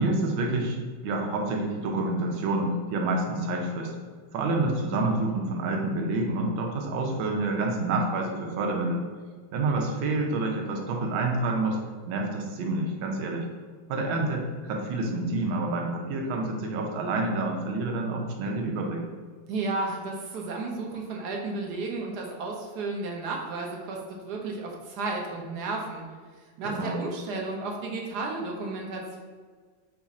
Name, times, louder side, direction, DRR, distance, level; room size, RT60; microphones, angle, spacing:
voice 1, 0.0-3.9 4.3-9.0 9.5-11.8 12.1-13.5 13.9-19.0 26.6-27.0, right 2 dB, 85° right, 1 dB, 1.5 m, -28 dB
voice 2, 19.5-26.0 26.6-29.2, right 3 dB, 70° right, 0 dB, 1.1 m, -33 dB
5.1 x 2.4 x 4.0 m, 1.6 s
omnidirectional pair, 2.1 m